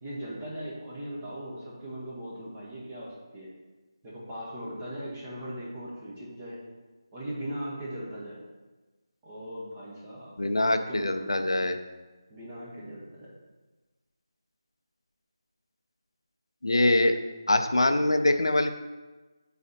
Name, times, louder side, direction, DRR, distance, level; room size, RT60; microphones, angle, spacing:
voice 1, 0.0-3.5 4.0-6.6 7.1-8.4 9.2-10.3 10.7-11.5 12.3-13.3, equal, 20° right, -7 dB, 1.1 m, -39 dB
voice 2, 10.4-11.8 16.6-17.2 17.5-18.7, left 1 dB, 80° left, 8 dB, 0.5 m, -23 dB
8.4 x 4.0 x 2.8 m, 1.2 s
figure-of-eight pair, 160°, 3 cm